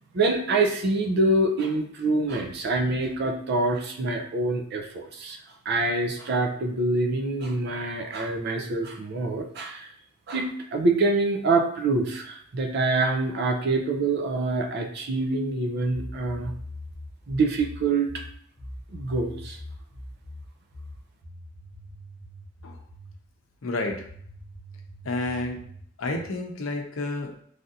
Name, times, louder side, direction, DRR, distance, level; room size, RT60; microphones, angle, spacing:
voice 1, 0.1-5.4 5.7-9.9 10.3-16.5 17.3-18.2 18.9-19.6, right 2 dB, 55° right, 3 dB, 0.4 m, -25 dB
sound 1, 15.9-23.2 23.9-26.4, left 1 dB, 30° right, 0.9 m, -42 dB
voice 2, 23.6-24.1 25.0-25.6 26.0-27.3, left 2 dB, 80° left, 3 dB, 0.6 m, -30 dB
3.3 x 2.5 x 2.7 m, 0.63 s
head